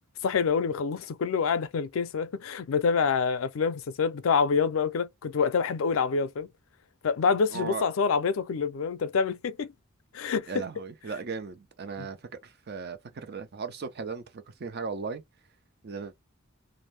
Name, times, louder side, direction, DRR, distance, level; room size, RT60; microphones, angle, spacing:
voice 1, 0.2-6.5 7.0-9.7 10.1-10.6 12.0-12.1, left 5 dB, 90° left, 0.4 m, -26 dB
voice 2, 7.5-7.9 10.5-12.2 12.4-15.2 15.8-16.1, right 5 dB, 55° right, 0.6 m, -37 dB
2.6 x 2.1 x 3.2 m
head